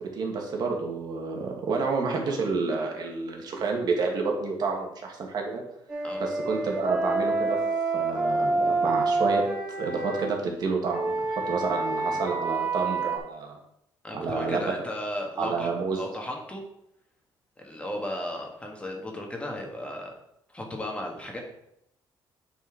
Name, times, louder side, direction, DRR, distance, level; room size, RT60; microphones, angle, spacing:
voice 1, 0.0-5.6 6.2-7.6 7.9-9.4 9.8-13.6 14.1-14.7 15.4-16.0, right 4 dB, 55° right, 1 dB, 1.8 m, -29 dB
Wind instrument woodwind instrument, 5.9-10.3 10.9-13.2, right 3 dB, 10° right, 1.9 m, -27 dB
voice 2, 14.0-16.6 17.6-20.1 20.5-21.4, left 1 dB, 15° left, 1 dB, 1.6 m, -35 dB
9.0 x 4.4 x 4.9 m, 0.79 s
cardioid pair, 130°, 9 cm